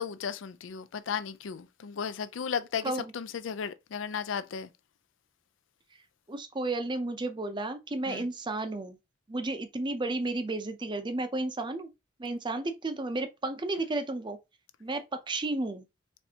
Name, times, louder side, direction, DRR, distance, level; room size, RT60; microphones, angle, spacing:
voice 1, 0.0-4.7 8.1-8.3, left 7 dB, 75° left, 0.4 m, -35 dB
voice 2, 6.3-9.0 9.3-11.9 12.2-14.4 14.8-15.9, right 2 dB, 25° right, 0.6 m, -32 dB
4.2 x 3.2 x 2.8 m
head